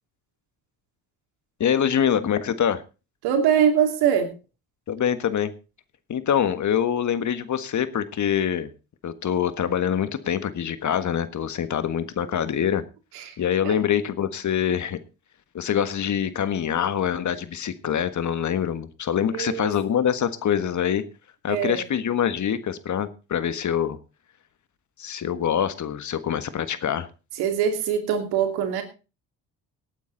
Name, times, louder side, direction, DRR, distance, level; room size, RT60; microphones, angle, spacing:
voice 1, 1.6-2.8 4.9-5.5 6.1-8.7 9.0-12.8 13.4-15.0 15.5-21.0 21.4-24.0 25.0-27.1, left 9 dB, 50° left, 12 dB, 1.5 m, -25 dB
voice 2, 3.2-4.3 13.1-13.3 13.6-13.7 19.3-19.7 21.5-21.8 27.4-28.8, right 8 dB, 90° right, 5 dB, 2.9 m, -23 dB
18.0 x 9.2 x 4.0 m, 0.32 s
supercardioid pair, 75°, 37 cm